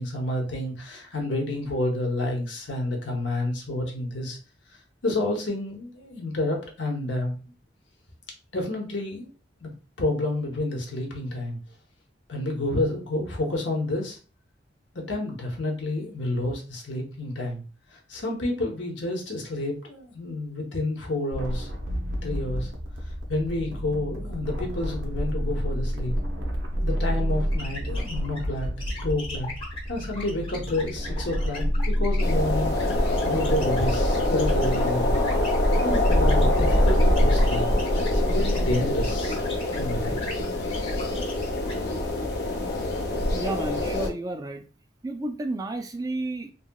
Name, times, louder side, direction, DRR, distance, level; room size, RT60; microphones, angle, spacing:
voice 1, 0.0-4.4 5.0-7.4 8.5-9.3 9.6-9.7 10.0-11.6 12.3-14.2 14.9-17.6 17.9-21.7 22.2-22.7 23.3-26.1 26.8-28.7 29.0-29.5 29.9-35.1 35.8-37.7 38.1-39.4 39.8-40.3, left 2 dB, 85° left, 0 dB, 0.9 m, -29 dB
sound 1, 21.3-34.6, equal, 85° right, 0.7 m, -30 dB
sound 2, 27.5-39.9 40.2-41.7, left 2 dB, 30° left, 1.0 m, -40 dB
sound 3, 32.2-44.1, left 1 dB, 60° left, 0.6 m, -24 dB
voice 2, 43.3-44.7 45.0-46.5, right 2 dB, 20° right, 5 dB, 0.3 m, -31 dB
2.9 x 2.8 x 2.2 m, 0.36 s
head